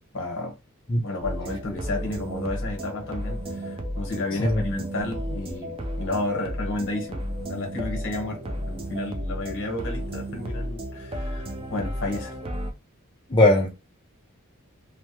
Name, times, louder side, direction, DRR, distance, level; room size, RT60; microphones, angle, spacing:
voice 1, 0.1-0.6 1.0-11.5 11.7-12.3, left 2 dB, 60° left, 1.1 m, -32 dB
sound 1, 1.2-12.7, equal, 25° right, 0.5 m, -33 dB
voice 2, 13.3-13.7, left 2 dB, 20° left, 0.5 m, -18 dB
3.2 x 2.0 x 3.0 m
head